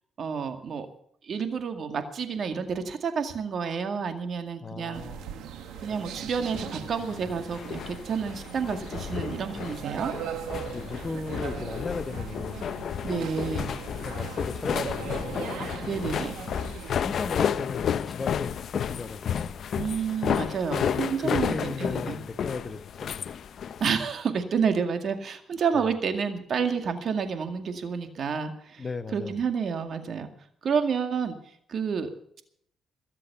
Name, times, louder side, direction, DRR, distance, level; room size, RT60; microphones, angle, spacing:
voice 1, 0.2-0.9 1.3-5.0 5.8-10.1 13.0-13.7 15.8-16.4 19.8-22.2 23.8-28.9 29.1-30.3 30.6-31.3 31.7-32.1, right 6 dB, 55° right, 7 dB, 2.1 m, -29 dB
voice 2, 4.6-5.3 10.7-12.7 14.0-15.4 16.9-19.6 20.8-23.3 25.7-25.8 28.8-29.4, left 4 dB, 30° left, 11 dB, 1.1 m, -36 dB
sound 1, 4.9-16.9, right 9 dB, 85° right, 1.5 m, -39 dB
sound 2, 6.0-23.9, left 8 dB, 60° left, 0.7 m, -32 dB
21.5 x 7.6 x 6.9 m, 0.68 s
cardioid pair, 90°, 0 cm